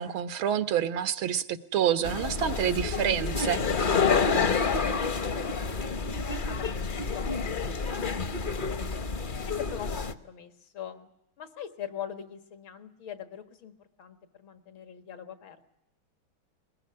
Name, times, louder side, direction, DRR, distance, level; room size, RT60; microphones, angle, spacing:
voice 1, 0.0-3.6, right 9 dB, 90° right, 11 dB, 2.0 m, -28 dB
sound 1, 2.0-10.1, left 5 dB, 40° left, 0.8 m, -28 dB
voice 2, 3.9-7.8 8.5-8.8 9.5-11.1 11.4-15.7, left 9 dB, 80° left, 9 dB, 2.5 m, -43 dB
21.5 x 20.5 x 9.6 m, 0.81 s
omnidirectional pair, 2.2 m